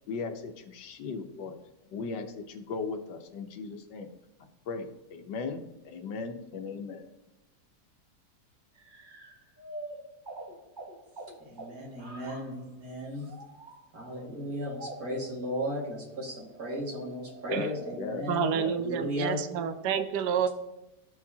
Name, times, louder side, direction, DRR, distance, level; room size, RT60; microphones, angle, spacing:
voice 1, 0.1-1.5 1.9-4.1 4.7-7.1 17.5-18.3 18.5-18.7, left 4 dB, 90° left, 6 dB, 1.5 m, -37 dB
sound 1, 8.8-12.6 13.2-13.8 14.2-14.3 14.6-15.3 15.9-18.1, right 2 dB, 30° right, 1.2 m, -46 dB
voice 2, 11.4-13.3 13.9-18.5 18.8-19.4, equal, 55° right, -4 dB, 2.6 m, -35 dB
voice 3, 18.3-20.5, right 7 dB, 75° right, 9 dB, 1.2 m, -29 dB
13.5 x 4.8 x 2.8 m, 0.97 s
omnidirectional pair, 1.9 m